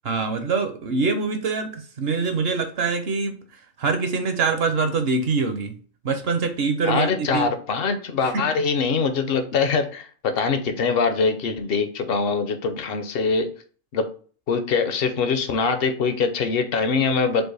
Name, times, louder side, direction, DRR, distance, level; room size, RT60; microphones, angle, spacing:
voice 1, 0.0-3.3 3.8-5.7 6.0-7.5 8.3-8.5, right 4 dB, 60° right, 7 dB, 0.7 m, -24 dB
voice 2, 6.8-13.5 13.9-14.1 14.5-17.4, left 5 dB, 55° left, 8 dB, 0.7 m, -23 dB
4.6 x 2.5 x 4.7 m, 0.42 s
omnidirectional pair, 1.4 m